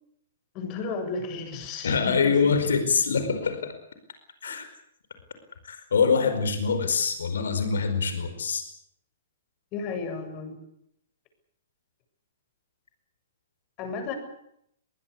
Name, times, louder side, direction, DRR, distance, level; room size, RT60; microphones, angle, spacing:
voice 1, 0.5-2.4 9.7-10.6 13.8-14.1, left 4 dB, 35° left, 7 dB, 7.4 m, -33 dB
voice 2, 1.8-3.7 4.4-4.6 5.6-8.6, left 5 dB, 75° left, 9 dB, 4.9 m, -24 dB
24.0 x 20.5 x 8.4 m, 0.73 s
hypercardioid pair, 115°, 0 cm